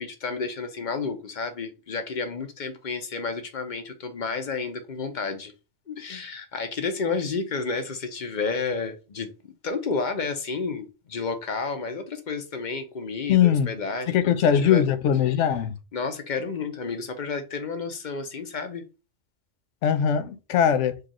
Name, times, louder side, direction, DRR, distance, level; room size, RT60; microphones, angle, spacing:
voice 1, 0.0-5.5 5.9-14.3 14.6-14.8 15.9-18.8, left 4 dB, 50° left, 0.7 m, -31 dB
voice 2, 13.3-13.7 14.1-15.7 19.8-21.0, left 9 dB, 85° left, 0.9 m, -21 dB
4.7 x 2.4 x 2.9 m
omnidirectional pair, 1.2 m